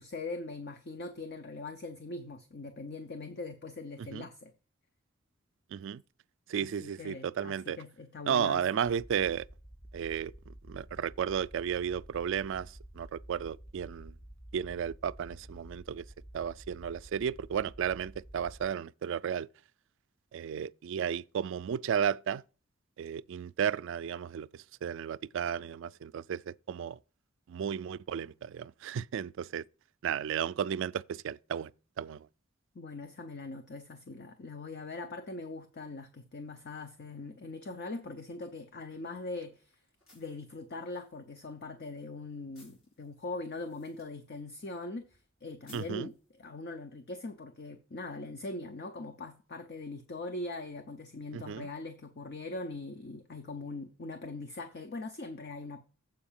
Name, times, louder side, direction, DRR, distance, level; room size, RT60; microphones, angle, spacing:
voice 1, 0.0-4.5 6.6-8.6 32.7-39.7 40.1-55.8, left 2 dB, 50° left, 0.7 m, -41 dB
voice 2, 5.7-6.0 6.5-7.8 8.3-9.5 9.9-10.3 10.7-14.1 14.5-16.0 16.3-19.5 20.3-22.4 23.0-24.5 24.8-27.0 27.5-29.6 30.0-31.7 32.0-32.3 45.7-46.1 51.3-51.7, right 8 dB, 65° right, 0.3 m, -33 dB
sound 1, 8.8-18.7, right 1 dB, 10° left, 0.5 m, -51 dB
sound 2, 38.3-46.8, left 2 dB, 85° left, 4.2 m, -65 dB
7.8 x 4.6 x 7.3 m
head